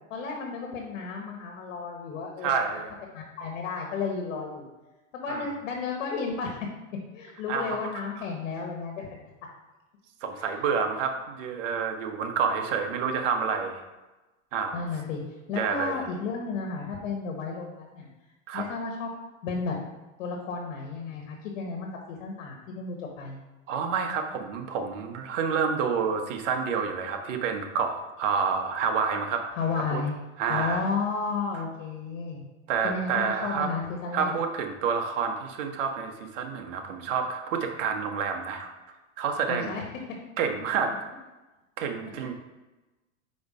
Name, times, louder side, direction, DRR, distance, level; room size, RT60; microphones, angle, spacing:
voice 1, 0.1-2.9 3.1-4.6 5.1-6.7 7.1-9.2 10.3-10.6 14.7-15.2 15.5-18.1 18.5-19.1 19.4-19.8 20.2-23.4 29.6-30.1 30.5-32.4 32.8-34.3 39.5-39.8 42.1-42.3, left 4 dB, 75° left, 2 dB, 1.4 m, -33 dB
voice 2, 2.4-2.9 5.3-5.5 7.5-7.9 10.2-13.8 14.5-14.8 15.5-16.0 18.5-18.6 23.7-29.4 29.9-30.0 30.4-30.8 32.7-33.7 34.1-38.7 39.2-39.7 40.4-40.9 41.8-42.3, right 6 dB, 75° right, 4 dB, 1.3 m, -28 dB
5.3 x 5.0 x 4.8 m, 1.1 s
supercardioid pair, 125°, 38 cm